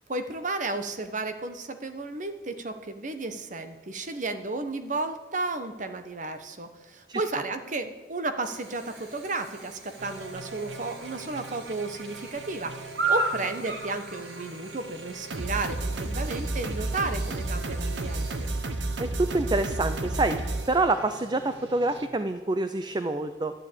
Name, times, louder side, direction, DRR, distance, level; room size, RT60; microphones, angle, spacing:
voice 1, 0.1-12.8 13.1-18.5, right 3 dB, 45° right, 9 dB, 1.1 m, -33 dB
Chirp tweet / Buzz, 8.4-18.6, right 3 dB, 70° right, 2.7 m, -37 dB
sound 1, 10.0-22.1, right 2 dB, 85° right, 1.1 m, -34 dB
voice 2, 19.3-20.4 20.7-23.5, right 2 dB, 25° right, 9 dB, 0.5 m, -26 dB
12.5 x 9.7 x 8.4 m, 1.3 s
head